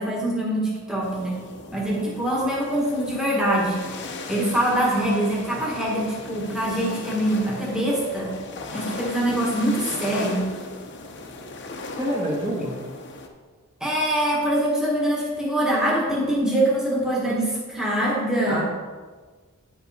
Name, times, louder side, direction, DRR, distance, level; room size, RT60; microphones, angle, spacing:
voice 1, 0.0-1.5 1.7-3.9 4.3-8.3 8.7-10.5 13.8-18.6, right 1 dB, 5° right, -4 dB, 1.4 m, -24 dB
sound 1, 1.0-13.3, left 3 dB, 50° left, 0.8 m, -37 dB
voice 2, 12.0-12.8 18.5-18.6, equal, 20° right, -4 dB, 1.3 m, -26 dB
9.4 x 5.3 x 4.2 m, 1.4 s
head